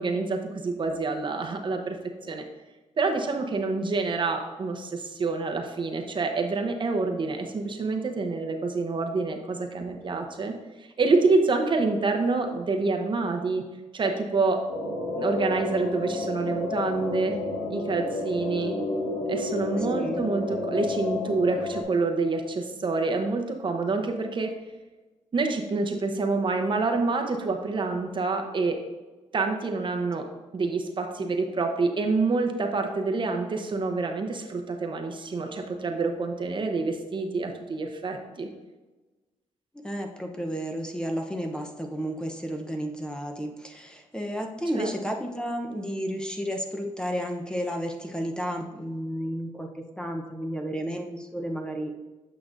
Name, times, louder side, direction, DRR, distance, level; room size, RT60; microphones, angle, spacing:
voice 1, 0.0-2.4 3.0-13.7 13.9-14.7 15.2-17.4 17.7-18.8 19.3-24.6 25.3-28.8 29.3-30.3 30.5-38.5 44.7-44.9, right 3 dB, 40° right, 4 dB, 0.8 m, -27 dB
sound 1, 14.7-21.8, left 2 dB, 85° left, 1.6 m, -31 dB
voice 2, 19.8-20.2 39.7-52.0, equal, 5° left, 2 dB, 0.8 m, -32 dB
8.3 x 5.9 x 2.6 m, 1.2 s
cardioid pair, 80°, 12 cm